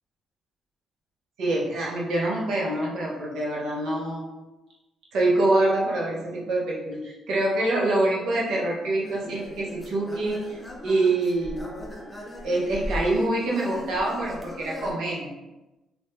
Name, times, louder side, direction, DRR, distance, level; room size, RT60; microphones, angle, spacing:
voice 1, 1.4-4.3 5.1-11.7 12.4-15.3, right 2 dB, 80° right, -4 dB, 0.8 m, -25 dB
sound 1, 9.0-14.9, left 1 dB, 5° left, 0.5 m, -38 dB
2.6 x 2.2 x 3.3 m, 1.0 s
cardioid pair, 100°, 0 cm